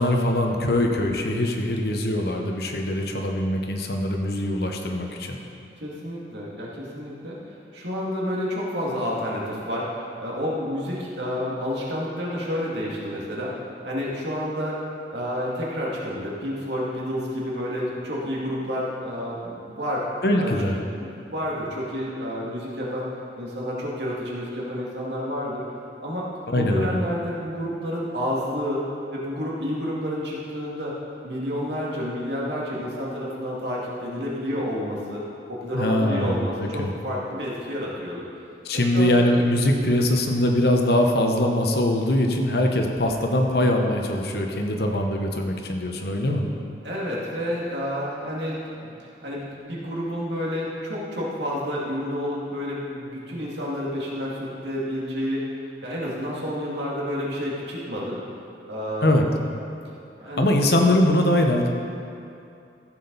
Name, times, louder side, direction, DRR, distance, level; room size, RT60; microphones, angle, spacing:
voice 1, 0.0-5.4 20.2-20.8 26.5-26.9 35.7-36.9 38.6-46.5 59.0-59.2 60.4-61.7, left 1 dB, 55° left, 2 dB, 0.9 m, -22 dB
voice 2, 5.8-7.4 7.7-13.5 13.8-14.8 15.1-20.0 20.4-20.5 21.0-23.1 23.4-25.6 26.0-26.3 26.6-28.8 29.1-30.9 31.2-35.2 35.5-38.3 38.7-39.1 46.8-55.4 55.8-58.2 58.7-59.2 60.2-60.5, equal, 70° right, -5 dB, 2.3 m, -29 dB
14.5 x 7.5 x 4.0 m, 2.6 s
head